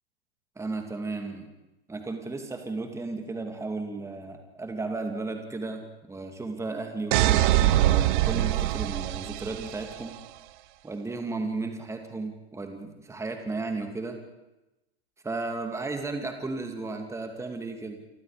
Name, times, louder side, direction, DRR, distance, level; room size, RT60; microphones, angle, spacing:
voice 1, 0.6-1.5 1.9-10.2 10.8-14.2 15.2-18.0, right 3 dB, 10° right, 5 dB, 2.6 m, -34 dB
sound 1, 7.1-10.0, right 14 dB, 50° right, 1.2 m, -23 dB
30.0 x 24.0 x 5.2 m, 1.0 s
figure-of-eight pair, 100°, 32 cm